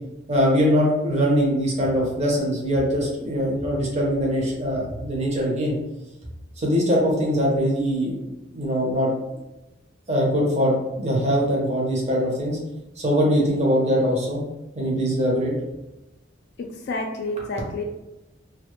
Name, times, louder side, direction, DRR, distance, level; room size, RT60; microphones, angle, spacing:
voice 1, 0.3-5.7 6.6-8.2 8.5-9.1 10.1-12.6 13.0-14.4 14.8-15.5, equal, 35° right, -2 dB, 0.7 m, -22 dB
voice 2, 16.6-17.8, left 2 dB, 60° left, 2 dB, 0.3 m, -29 dB
2.2 x 2.1 x 2.9 m, 0.98 s
head